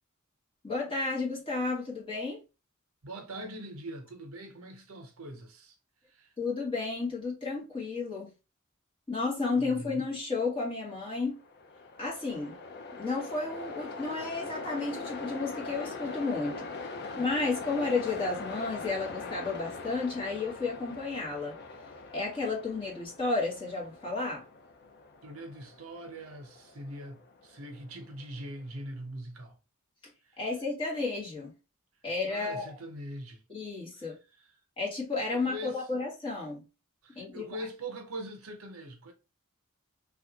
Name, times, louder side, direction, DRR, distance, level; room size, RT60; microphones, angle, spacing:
voice 1, 0.6-2.4 6.4-8.3 9.1-11.4 12.0-12.6 12.9-24.5 30.0-30.1 30.4-31.5 32.0-32.8 33.5-34.2 34.8-36.6 37.1-37.6, left 3 dB, 25° left, 1.5 m, -32 dB
voice 2, 3.0-5.7 6.1-6.3 9.6-10.0 25.2-29.6 30.2-30.4 32.3-33.4 35.3-35.8 37.0-39.1, right 1 dB, 85° right, 0.8 m, -42 dB
Train, 11.3-28.5, left 3 dB, 50° left, 0.5 m, -42 dB
3.3 x 2.4 x 2.8 m
head